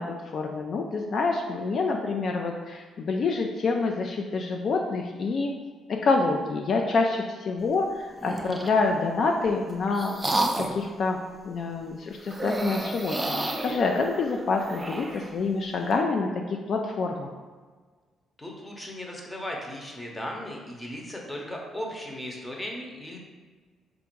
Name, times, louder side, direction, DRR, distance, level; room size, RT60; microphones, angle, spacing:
voice 1, 0.0-5.5 5.9-10.2 10.7-11.2 11.4-17.3, left 3 dB, 55° left, 2 dB, 0.3 m, -27 dB
sound 1, 8.2-8.8 9.5-10.9 12.3-15.3, right 1 dB, 15° right, 0.4 m, -31 dB
voice 2, 18.4-23.2, left 1 dB, 10° left, -1 dB, 0.8 m, -37 dB
3.5 x 2.5 x 4.5 m, 1.5 s
cardioid pair, 90°, 0 cm